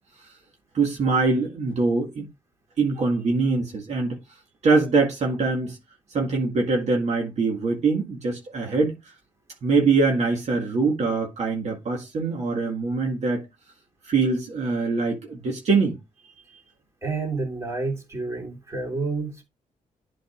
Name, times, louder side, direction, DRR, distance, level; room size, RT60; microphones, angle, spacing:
voice 1, 0.7-2.3 2.8-4.2 4.6-5.8 6.1-9.0 9.6-13.4 14.0-16.0, right 4 dB, 55° right, 1.9 m, -23 dB
voice 2, 17.0-19.4, right 3 dB, 20° right, 3.2 m, -29 dB
11.5 x 5.2 x 2.5 m
cardioid pair, 130°, 14 cm